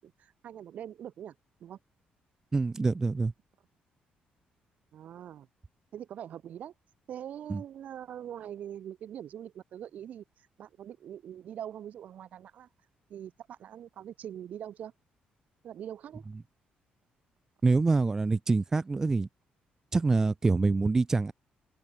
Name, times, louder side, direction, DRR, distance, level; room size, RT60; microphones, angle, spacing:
voice 1, 0.0-1.3 1.6-1.8 4.9-5.5 5.9-6.7 7.1-12.7 13.1-14.9 15.6-16.2, right 10 dB, 55° right, 6.7 m, -43 dB
voice 2, 2.5-3.3 7.5-7.6 17.6-19.3 19.9-21.3, right 3 dB, 20° right, 0.9 m, -25 dB
cardioid pair, 160°, 3 cm